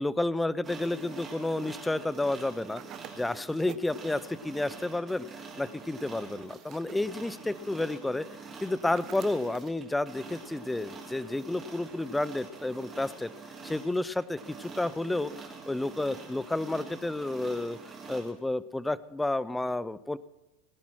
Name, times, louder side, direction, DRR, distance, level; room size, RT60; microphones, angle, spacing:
voice 1, 0.0-2.8 3.1-5.2 5.6-8.3 8.6-13.3 13.6-17.8 18.1-20.2, left 2 dB, 5° left, 18 dB, 0.5 m, -31 dB
sound 1, 0.6-18.3, right 4 dB, 20° right, 3.5 m, -46 dB
sound 2, 2.8-4.0 6.3-7.1 9.0-9.8, right 12 dB, 45° right, 0.8 m, -49 dB
19.0 x 10.5 x 6.1 m, 0.98 s
supercardioid pair, 110°, 0 cm